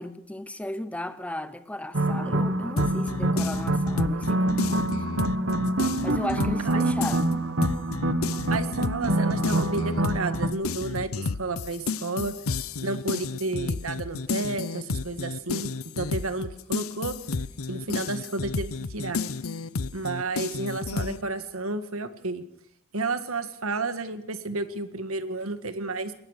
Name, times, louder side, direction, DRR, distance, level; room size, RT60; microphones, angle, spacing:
voice 1, 0.0-5.0 6.0-7.3, left 1 dB, 5° left, 0.9 m, -35 dB
sound 1, 1.9-10.5, right 1 dB, 60° right, 1.4 m, -26 dB
sound 2, 2.8-6.7 7.0-21.2, left 4 dB, 85° left, 0.8 m, -32 dB
voice 2, 8.5-12.3 12.8-15.7 16.0-17.2 17.7-19.2 19.9-22.4 22.9-26.1, right 3 dB, 85° right, 1.8 m, -31 dB
22.0 x 19.5 x 6.6 m
head